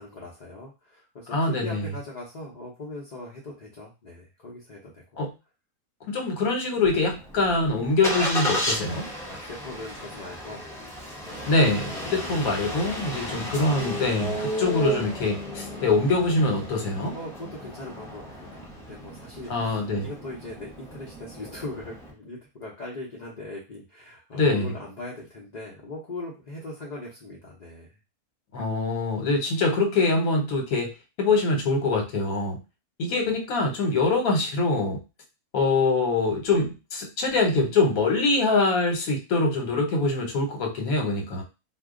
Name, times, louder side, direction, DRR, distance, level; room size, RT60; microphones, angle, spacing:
voice 1, 0.0-5.2 9.2-10.7 11.2-12.4 17.1-28.0, left 2 dB, 40° left, -4 dB, 0.6 m, -40 dB
voice 2, 1.3-1.9 5.2-5.3 6.1-9.0 11.5-17.1 19.5-20.1 24.3-24.7 28.5-30.9 31.2-32.6 33.0-35.0 35.5-41.4, left 3 dB, 75° left, 2 dB, 1.3 m, -24 dB
Engine starting, 6.8-22.1, left 1 dB, 5° left, 0.6 m, -34 dB
2.6 x 2.2 x 3.6 m, 0.28 s
omnidirectional pair, 1.5 m